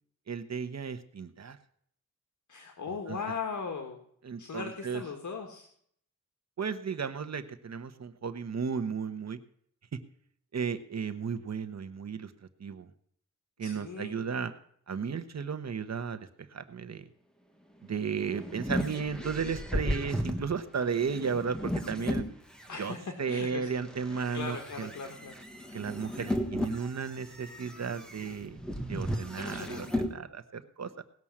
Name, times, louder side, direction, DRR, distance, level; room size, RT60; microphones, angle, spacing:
voice 1, 0.3-1.6 3.1-3.2 4.2-5.0 6.6-9.4 9.9-10.0 10.5-12.3 12.6-12.9 13.6-14.5 14.9-17.0 17.9-22.2 22.8-22.9 23.2-24.9 25.7-28.6 28.9-31.0, right 6 dB, 55° right, 10 dB, 1.1 m, -34 dB
voice 2, 2.5-4.0 4.4-5.7 13.6-14.2 22.7-23.7 24.1-25.3 29.0-29.9, left 5 dB, 70° left, 4 dB, 1.7 m, -39 dB
sound 1, 17.9-22.9 23.5-30.1, equal, ahead, 1.6 m, -35 dB
18.5 x 6.2 x 7.3 m, 0.64 s
wide cardioid pair, 120°, 31 cm